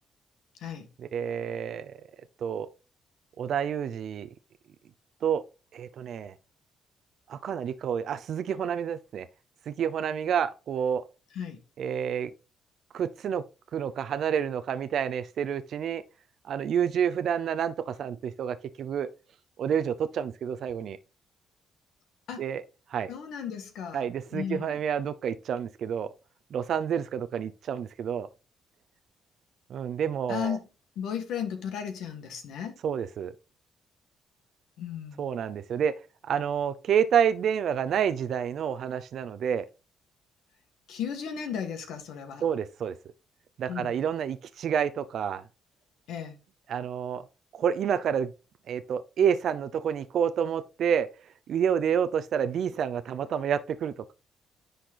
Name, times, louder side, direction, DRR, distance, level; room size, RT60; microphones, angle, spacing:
voice 1, 1.0-2.0 2.4-2.7 3.4-4.3 5.2-5.4 5.7-6.3 7.3-9.3 9.7-11.0 11.8-12.3 12.9-13.4 13.7-16.0 16.4-19.1 19.6-21.0 22.4-22.6 22.9-23.1 23.9-26.1 26.5-28.3 29.7-30.6 32.8-33.3 35.2-35.9 36.2-39.6 42.4-42.9 43.6-45.4 46.7-47.2 47.5-48.3 48.7-51.1 51.5-54.1, right 8 dB, 65° right, 0.6 m, -29 dB
voice 2, 23.1-24.1 24.3-24.8 30.3-30.6 31.0-32.8 34.8-35.4 40.9-42.4 43.7-43.9 46.1-46.4, left 8 dB, 80° left, 2.1 m, -35 dB
10.0 x 4.3 x 3.9 m
cardioid pair, 90°, 0 cm